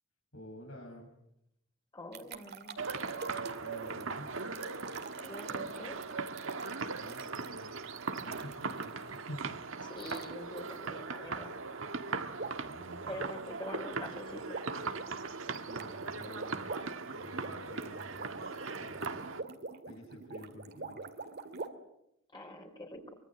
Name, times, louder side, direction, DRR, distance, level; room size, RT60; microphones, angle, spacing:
voice 1, 0.3-1.1 3.6-4.3 6.9-7.8 8.2-9.6 12.5-13.2 15.5-16.7 17.1-18.5 18.8-19.3 19.9-21.0, equal, 75° left, -1 dB, 7.1 m, -49 dB
voice 2, 1.9-2.8 5.2-6.0 9.8-11.6 13.1-14.6 22.3-23.2, left 1 dB, 20° left, 2 dB, 3.9 m, -45 dB
sound 1, 2.1-9.2 9.9-10.2 10.6-10.8 12.4-12.7 13.0-21.7, right 3 dB, 50° right, 2.4 m, -45 dB
sound 2, 2.8-19.4, right 4 dB, 65° right, 1.7 m, -39 dB
24.5 x 23.5 x 8.9 m, 0.82 s
head